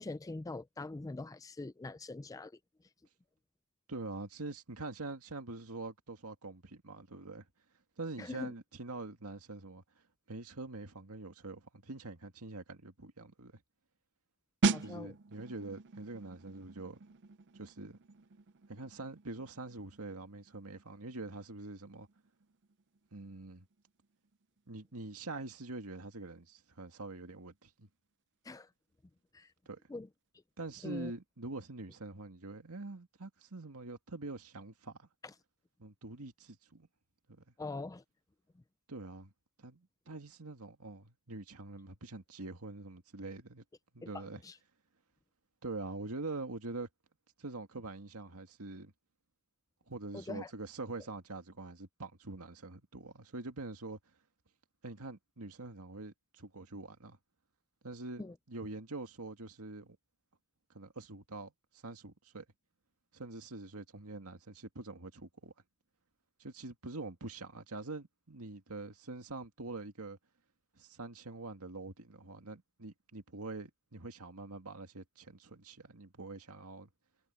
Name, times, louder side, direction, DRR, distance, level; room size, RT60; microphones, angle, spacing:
voice 1, 0.0-2.5 8.2-8.5 14.7-15.1 28.5-28.7 29.3-29.5 29.9-30.1 30.8-31.1 37.6-38.0 44.0-44.1 44.4-44.5 50.1-50.5 58.2-58.3, left 2 dB, 15° left, 0.4 m, -43 dB
voice 2, 3.9-7.4 8.0-9.8 10.3-13.6 14.8-17.0 17.5-18.0 18.7-22.1 23.1-23.7 24.7-27.9 29.7-29.8 30.6-35.1 35.8-36.9 37.3-37.4 38.9-39.3 39.6-43.6 43.9-44.4 45.6-46.9 47.4-48.9 49.9-54.0 54.8-57.2 57.8-60.0 60.7-61.5 61.8-62.4 63.1-65.5 66.4-70.2 70.8-76.9, right 2 dB, 85° right, 2.0 m, -45 dB
sound 1, 14.6-25.1 25.4-25.7, right 4 dB, 55° right, 0.6 m, -40 dB
head